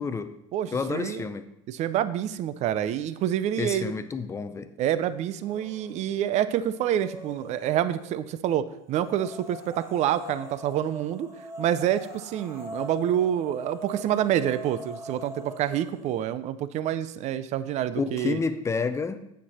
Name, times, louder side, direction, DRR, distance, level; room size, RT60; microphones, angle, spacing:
voice 1, 0.0-0.4 0.7-1.5 3.6-4.7 18.0-19.2, left 4 dB, 15° left, 11 dB, 0.5 m, -29 dB
voice 2, 0.5-1.2 1.7-3.9 4.8-11.3 11.6-18.4, right 11 dB, 45° right, 14 dB, 0.5 m, -27 dB
sound 1, 5.4-6.0 6.4-8.2 8.9-16.1, right 1 dB, 15° right, 1.5 m, -42 dB
8.1 x 7.4 x 4.2 m, 0.79 s
supercardioid pair, 125°, 16 cm